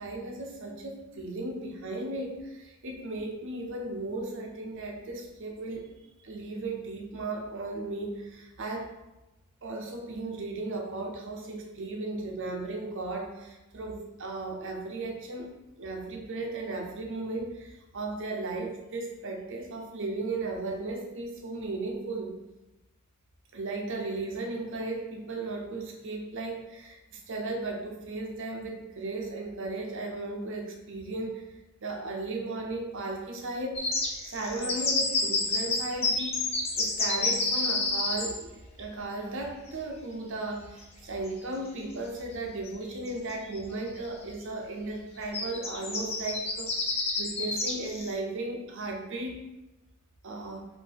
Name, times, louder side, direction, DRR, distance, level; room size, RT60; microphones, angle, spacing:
voice 1, 0.0-5.9 6.2-8.9 9.6-15.5 15.8-22.3 23.5-31.3 31.8-33.8 34.2-38.5 38.8-49.4 50.2-50.7, right 2 dB, 60° right, 1 dB, 0.8 m, -36 dB
sound 1, 33.8-38.4 40.8-40.9 41.3-41.4 42.7-42.8 43.1-43.6 44.0-44.2 45.3-48.1, left 3 dB, 30° left, 0.8 m, -29 dB
4.7 x 2.7 x 4.0 m, 1.0 s
head